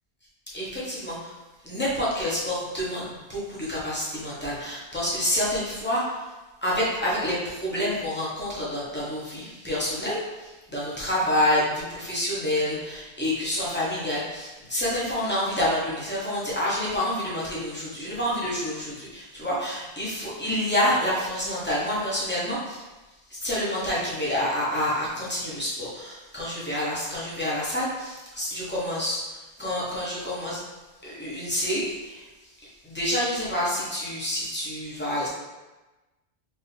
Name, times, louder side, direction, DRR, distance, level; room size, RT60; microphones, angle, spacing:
voice 1, 0.5-1.3 1.6-6.3 6.6-22.8 23.3-30.6 31.0-35.3, left 1 dB, 10° left, -7 dB, 1.0 m, -28 dB
4.6 x 2.8 x 3.3 m, 1.1 s
omnidirectional pair, 1.0 m